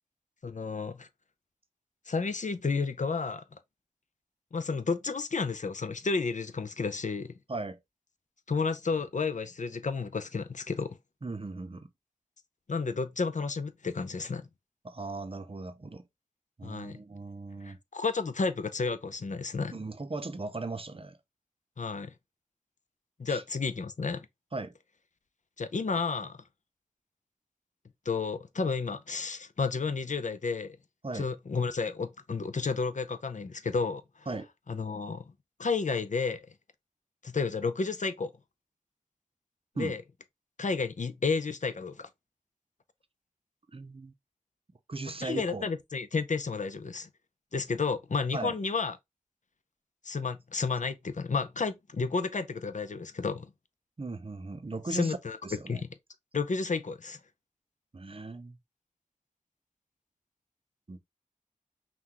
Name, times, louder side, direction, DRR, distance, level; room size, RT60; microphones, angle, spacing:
voice 1, 0.4-1.1 2.1-3.6 4.5-7.3 8.5-11.0 12.7-14.5 16.6-17.0 17.6-19.8 21.8-22.1 23.2-24.3 25.6-26.4 28.1-30.8 31.1-34.0 34.7-35.2 35.6-36.4 37.2-38.3 39.8-40.0 40.6-42.1 45.2-47.1 47.5-49.0 50.0-53.5 54.9-55.4 55.7-55.9 56.3-57.2, left 4 dB, 70° left, 0.5 m, -31 dB
voice 2, 11.2-11.9 14.8-16.1 16.6-17.8 19.7-21.2 23.3-23.4 24.5-24.7 31.0-31.3 34.3-34.5 39.7-40.0 43.7-44.1 44.9-45.7 48.3-48.5 54.0-55.2 55.4-55.8 57.9-58.6 60.9-61.0, right 3 dB, 45° right, 0.6 m, -38 dB
5.8 x 2.2 x 2.9 m
wide cardioid pair, 45°, 13 cm